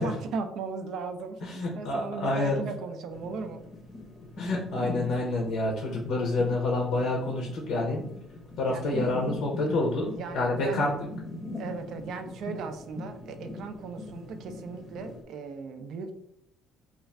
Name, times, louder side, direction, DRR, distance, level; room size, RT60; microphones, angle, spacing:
voice 1, 0.0-3.6 8.7-9.0 10.1-10.9 11.6-16.1, right 5 dB, 65° right, 7 dB, 0.4 m, -37 dB
voice 2, 1.4-2.6 4.4-8.0 8.6-10.1 10.3-11.0, left 2 dB, 75° left, -1 dB, 0.6 m, -28 dB
sound 1, 3.1-15.2, left 2 dB, 25° left, 0.6 m, -41 dB
2.4 x 2.4 x 3.2 m, 0.76 s
cardioid pair, 125°, 0 cm